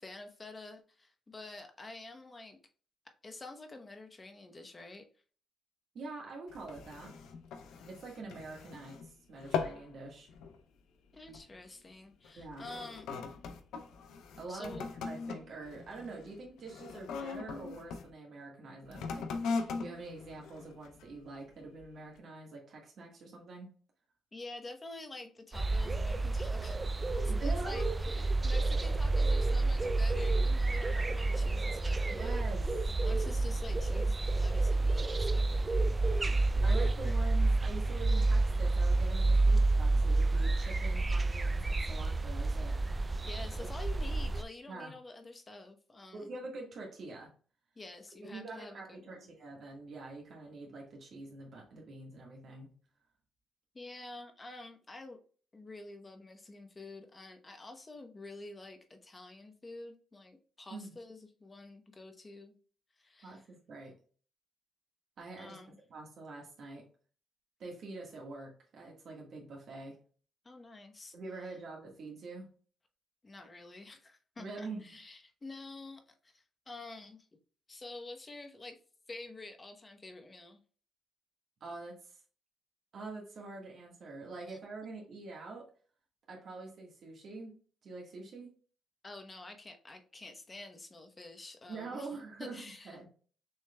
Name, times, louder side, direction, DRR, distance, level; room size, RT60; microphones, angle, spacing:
voice 1, 0.0-2.6 3.2-5.1 7.8-7.9 11.1-13.1 14.5-14.9 24.3-26.8 27.1-32.4 33.0-37.2 43.3-46.3 47.8-49.3 53.7-55.2 55.5-62.6 63.0-63.4 65.4-65.8 70.4-71.1 73.2-77.3 77.7-78.7 79.1-80.6 84.5-84.6 89.0-92.1 92.4-93.0, left 2 dB, 25° left, 0.8 m, -48 dB
voice 2, 5.9-7.2 7.9-8.9 9.3-10.3 12.3-12.7 14.3-19.3 19.8-23.7 27.3-28.0 32.1-32.7 36.6-42.8 44.7-44.9 46.1-47.3 48.2-52.7 60.7-61.0 63.2-63.9 65.2-66.8 67.6-70.0 71.1-72.5 74.4-74.8 81.6-82.2 82.9-85.7 86.3-87.6 87.8-88.5 91.7-93.1, right 3 dB, 60° right, 1.4 m, -45 dB
sound 1, 6.5-9.1 9.4-9.9 10.3-10.6 11.3-11.5 12.2-18.1 18.8-21.2 21.8-21.9, left 5 dB, 85° left, 0.5 m, -40 dB
sound 2, 25.5-44.4, right 2 dB, 25° right, 0.3 m, -29 dB
6.3 x 3.2 x 2.2 m
cardioid pair, 90°, 0 cm